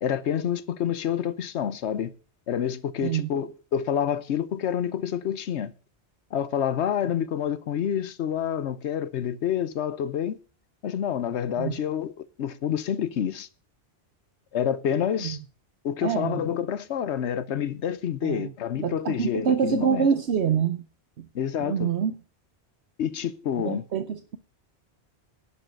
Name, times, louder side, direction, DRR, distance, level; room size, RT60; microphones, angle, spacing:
voice 1, 0.0-2.1 2.5-5.7 6.3-10.4 10.8-13.5 14.5-15.4 15.8-20.1 21.3-21.9 23.0-23.8, left 9 dB, 85° left, 1.0 m, -28 dB
voice 2, 16.0-16.4 18.2-18.5 18.8-20.8 21.2-21.3 21.6-22.1 23.6-24.4, right 8 dB, 75° right, 1.1 m, -26 dB
11.0 x 6.4 x 8.0 m
omnidirectional pair, 1.1 m